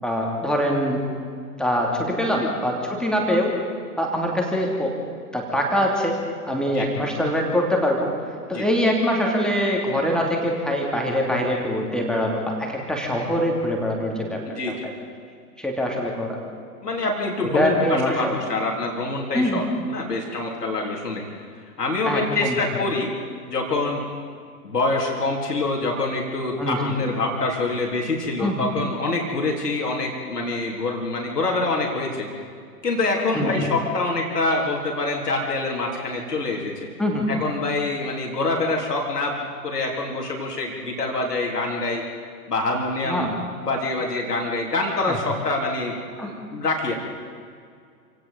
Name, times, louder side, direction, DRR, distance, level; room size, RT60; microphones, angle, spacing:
voice 1, 0.0-1.0 1.6-3.5 4.0-5.0 5.3-6.2 6.5-8.1 8.5-14.4 14.7-14.8 15.6-16.4 17.5-18.3 19.3-19.6 22.1-22.9 26.6-26.8 28.4-28.7 33.3-33.7 37.0-37.3 43.0-43.4 45.1-45.2 46.2-46.3, equal, ahead, -1 dB, 2.9 m, -23 dB
voice 2, 14.5-14.9 16.8-21.2 21.8-23.1 23.5-24.0 24.6-32.3 32.8-36.9 37.3-42.0 42.5-43.4 43.7-46.0 46.5-46.9, left 2 dB, 70° left, 0 dB, 3.9 m, -25 dB
28.0 x 18.0 x 5.4 m, 2.2 s
figure-of-eight pair, 110°, 49 cm